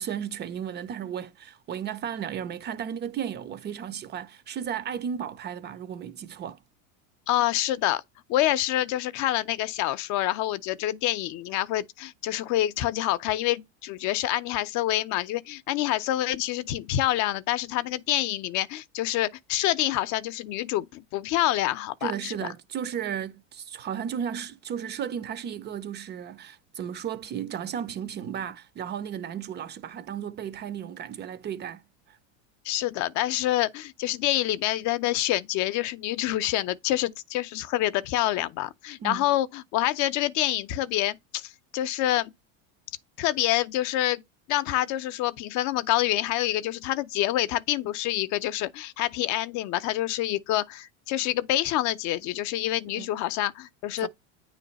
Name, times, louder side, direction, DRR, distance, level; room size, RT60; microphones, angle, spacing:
voice 1, 0.0-6.6 22.0-32.2 39.0-39.3 53.0-53.1 54.0-54.1, right 8 dB, 25° right, 0.5 m, -34 dB
voice 2, 7.3-8.0 8.3-22.3 32.6-42.3 43.2-44.2 44.5-54.1, left 14 dB, 50° left, 0.6 m, -27 dB
9.2 x 3.2 x 4.0 m
supercardioid pair, 130°, 38 cm